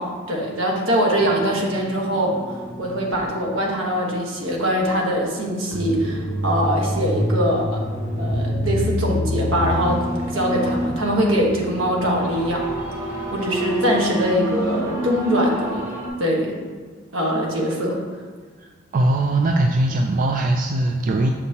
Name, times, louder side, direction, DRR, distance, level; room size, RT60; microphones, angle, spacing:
voice 1, 0.0-7.8 8.2-12.7 13.3-15.9 16.2-16.5 17.1-18.0, equal, 75° right, -1 dB, 1.3 m, -22 dB
sound 1, 1.1-4.5 4.8-16.1, equal, 15° right, 1.3 m, -27 dB
voice 2, 18.6-21.3, right 2 dB, 40° right, 3 dB, 0.3 m, -21 dB
7.0 x 5.4 x 2.8 m, 1.5 s
head